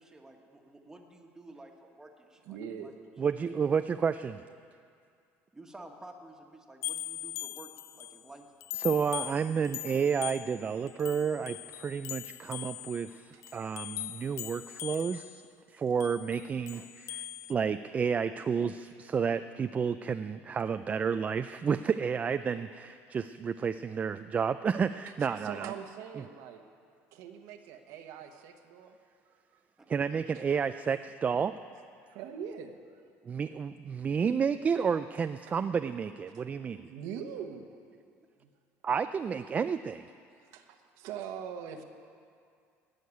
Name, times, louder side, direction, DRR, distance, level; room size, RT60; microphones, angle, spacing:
voice 1, 0.0-2.9 5.5-8.4 29.8-29.9, right 2 dB, 10° right, 2 dB, 1.5 m, -51 dB
voice 2, 2.5-2.9 13.3-13.4 15.1-15.2 25.4-26.6 27.1-29.0 32.1-32.8 35.5-35.6 36.8-37.8 38.4-38.5 40.5-41.8, right 8 dB, 80° right, 5 dB, 1.2 m, -42 dB
voice 3, 3.2-4.4 8.8-15.4 15.7-25.7 26.2-26.3 29.9-31.5 33.3-36.9 38.8-40.1, right 6 dB, 25° right, 10 dB, 0.3 m, -31 dB
sound 1, 6.8-8.2 8.6-15.4 16.0-17.5, left 14 dB, 60° left, 0.5 m, -41 dB
17.5 x 6.6 x 9.8 m, 2.3 s
cardioid pair, 125°, 5 cm